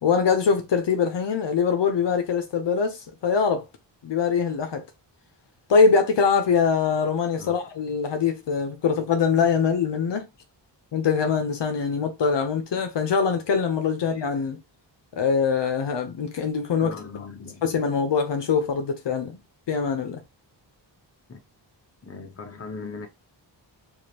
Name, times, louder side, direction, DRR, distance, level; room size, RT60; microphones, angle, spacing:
voice 1, 0.0-3.7 4.0-4.8 5.7-10.2 10.9-14.6 15.1-16.9 17.6-19.4 19.7-20.2, left 5 dB, 65° left, 0.8 m, -23 dB
voice 2, 16.8-17.6 21.3-21.4 22.0-23.1, left 4 dB, 30° left, 0.8 m, -38 dB
4.8 x 2.6 x 2.8 m
wide cardioid pair, 130°, 45 cm